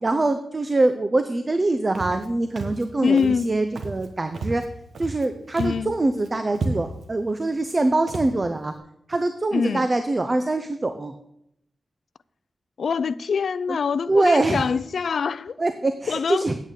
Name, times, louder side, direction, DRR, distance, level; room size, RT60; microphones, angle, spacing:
voice 1, 0.0-4.6 5.0-8.7 9.1-11.1 14.1-14.6 15.6-16.6, right 2 dB, 30° right, 0.6 m, -23 dB
Walk footsteps, 1.9-2.3 2.6-2.9 3.2-3.5 3.8-4.1 4.3-5.3 5.5-5.9 6.2-6.3 6.5-7.1 7.6-7.7 8.1-8.3, right 3 dB, 80° right, 1.2 m, -32 dB
voice 2, 3.0-3.5 5.6-5.9 9.5-9.9 12.8-15.6 16.1-16.4, left 6 dB, 75° left, 0.3 m, -24 dB
8.8 x 8.4 x 5.3 m
wide cardioid pair, 85°, 0 cm